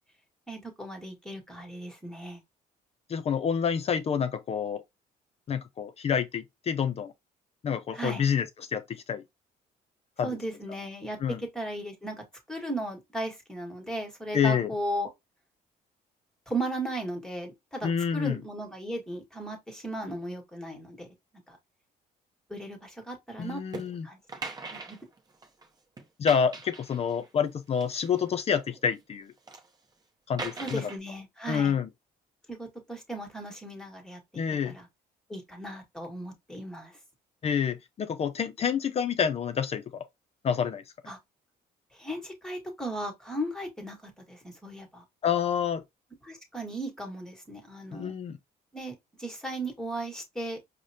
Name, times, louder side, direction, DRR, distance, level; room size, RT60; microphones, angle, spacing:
voice 1, 0.5-2.4 7.9-8.2 10.2-15.1 16.5-21.1 21.5-21.6 22.5-23.6 24.0-24.2 24.7-25.0 30.5-31.8 32.5-34.9 35.3-36.9 41.0-41.2 41.9-45.0 46.2-48.1 48.7-50.6, right 1 dB, 5° left, 1.4 m, -36 dB
voice 2, 3.1-4.8 5.5-7.1 7.6-9.2 10.2-10.3 11.2-11.4 14.3-14.7 17.8-18.4 23.4-24.1 26.2-29.3 30.3-30.8 31.5-31.9 34.4-34.7 37.4-40.0 40.4-40.8 45.2-45.8 47.9-48.4, left 7 dB, 40° left, 0.4 m, -28 dB
sound 1, 23.7-23.9 24.3-25.7 26.0-27.3 27.7-28.8 29.2-29.7 30.4-31.0, right 3 dB, 25° right, 0.8 m, -40 dB
4.7 x 2.1 x 2.7 m
cardioid pair, 95°, 17 cm